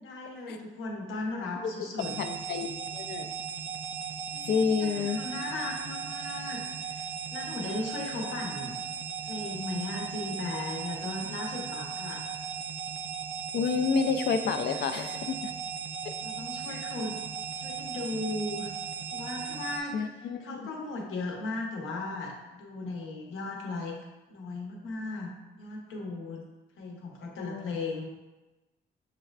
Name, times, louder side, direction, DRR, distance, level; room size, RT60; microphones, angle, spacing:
voice 1, 0.0-2.2 4.3-6.6 6.9-7.1 7.3-8.8 9.2-12.2 16.2-17.1 17.6-18.7 19.1-24.0 24.3-26.4 26.8-28.1, left 2 dB, 80° left, 0 dB, 0.9 m, -37 dB
sound 1, 2.0-19.8, right 7 dB, 75° right, 0.4 m, -37 dB
voice 2, 2.2-3.3 4.5-5.2 13.5-15.4 16.0-16.1 19.9-20.7 27.4-27.7, left 5 dB, 60° left, 7 dB, 0.4 m, -29 dB
6.5 x 2.3 x 2.3 m, 1.1 s
cardioid pair, 90°, 20 cm